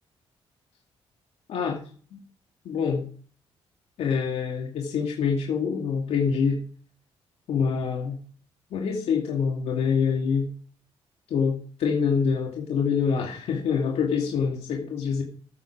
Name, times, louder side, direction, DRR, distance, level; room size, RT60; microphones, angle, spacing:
voice 1, 1.5-1.8 2.1-2.2 2.6-3.1 4.0-6.6 7.5-8.2 8.7-10.5 11.3-15.2, left 6 dB, 85° left, 0 dB, 2.4 m, -25 dB
13.5 x 8.7 x 4.9 m, 0.43 s
cardioid pair, 110°, 11 cm